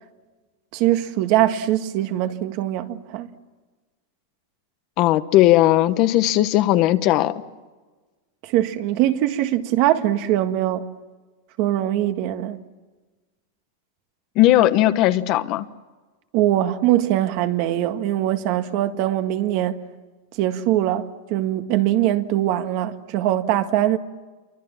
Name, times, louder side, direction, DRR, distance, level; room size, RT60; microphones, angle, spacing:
voice 1, 0.7-3.3 8.4-10.9 11.6-12.6 16.3-19.8 20.3-24.0, right 13 dB, 45° right, 1.7 m, -22 dB
voice 2, 5.0-7.4 14.3-15.6, left 14 dB, 40° left, 1.1 m, -17 dB
28.5 x 24.5 x 7.2 m
supercardioid pair, 155°, 0 cm